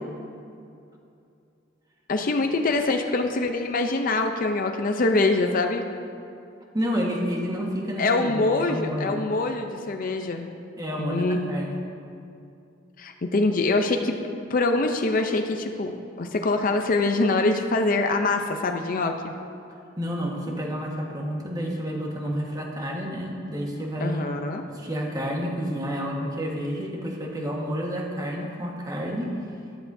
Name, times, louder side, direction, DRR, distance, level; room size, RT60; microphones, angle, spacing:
voice 1, 2.1-5.8 8.0-10.5 11.0-11.6 13.0-14.2 14.5-19.3 24.0-24.6, left 2 dB, 45° left, 4 dB, 0.5 m, -24 dB
voice 2, 6.7-9.2 10.8-11.7 20.0-24.3 24.7-29.4, equal, 20° right, -1 dB, 1.4 m, -30 dB
13.5 x 11.5 x 2.7 m, 2.6 s
head